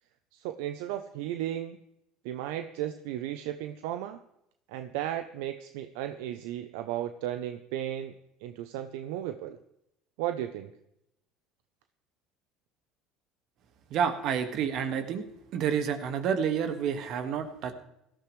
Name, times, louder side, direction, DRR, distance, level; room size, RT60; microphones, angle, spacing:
voice 1, 0.3-1.8 2.2-4.2 4.7-8.1 8.4-9.6 10.2-10.7, right 12 dB, 80° right, 9 dB, 0.6 m, -35 dB
voice 2, 13.9-15.2 15.5-17.7, right 7 dB, 60° right, 8 dB, 1.8 m, -29 dB
17.5 x 13.0 x 3.2 m, 0.82 s
supercardioid pair, 85°, 0 cm